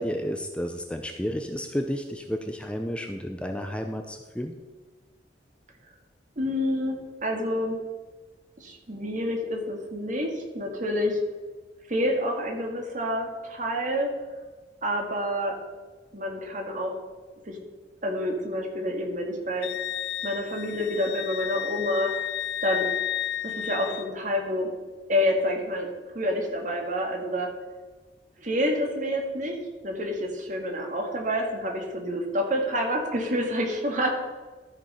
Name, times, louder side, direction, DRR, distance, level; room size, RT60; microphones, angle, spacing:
voice 1, 0.0-4.5, equal, 5° left, 4 dB, 0.6 m, -31 dB
voice 2, 6.4-6.9 7.2-7.8 8.6-11.2 11.9-14.1 14.8-15.6 16.1-16.9 17.5-17.6 18.0-19.7 20.2-22.1 22.6-22.9 23.4-24.7 25.1-25.9 26.1-27.5 28.4-29.6 29.8-34.1, equal, 45° right, 1 dB, 2.1 m, -28 dB
Wind instrument woodwind instrument, 19.6-24.1, left 11 dB, 65° left, 0.4 m, -32 dB
13.0 x 5.3 x 5.5 m, 1.3 s
head